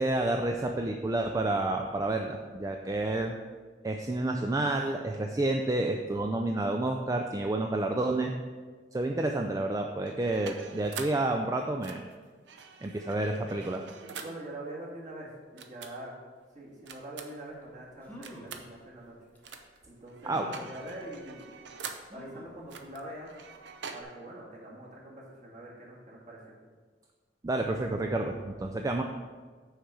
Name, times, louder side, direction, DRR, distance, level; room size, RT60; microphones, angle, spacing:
voice 1, 0.0-3.4 3.8-8.3 8.9-12.1 12.8-13.8 20.2-20.5 27.4-29.0, right 2 dB, 20° right, 3 dB, 0.3 m, -29 dB
sound 1, 10.0-11.3 11.8-14.4 15.6-15.9 16.9-17.5 18.2-18.7 19.4-19.8 20.1-22.1 22.7-24.0, right 5 dB, 75° right, 0.7 m, -44 dB
voice 2, 14.0-16.1 16.5-19.2 19.8-21.6 22.1-23.3 23.9-26.6, right 1 dB, 40° right, -4 dB, 1.9 m, -44 dB
sound 2, 17.6-17.7 18.0-18.6 19.4-19.5 20.3-20.8 22.1-22.6 23.1-23.2 23.5-23.6, equal, 10° left, 0.9 m, -47 dB
6.5 x 4.8 x 6.1 m, 1.5 s
head